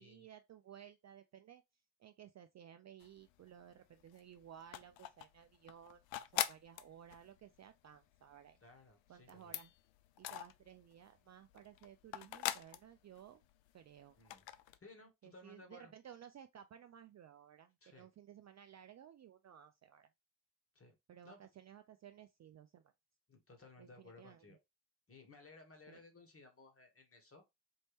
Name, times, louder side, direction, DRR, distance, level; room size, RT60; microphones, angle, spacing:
voice 1, 0.0-1.6 2.0-6.0 6.3-8.6 9.1-9.7 10.2-13.4 13.7-14.2 15.2-20.1 21.1-22.9 23.8-24.6 25.9-26.0, right 9 dB, 40° right, 0.4 m, -57 dB
sound 1, 3.0-3.7 4.0-11.1 11.4-13.8 14.1-14.8, left 13 dB, 70° left, 0.5 m, -43 dB
voice 2, 8.6-9.6 14.2-14.4 14.8-15.9 17.8-18.1 20.7-20.9 21.2-21.4 23.3-24.6 25.1-27.4, left 3 dB, 30° left, 1.6 m, -59 dB
4.4 x 2.6 x 3.4 m
supercardioid pair, 70°, 47 cm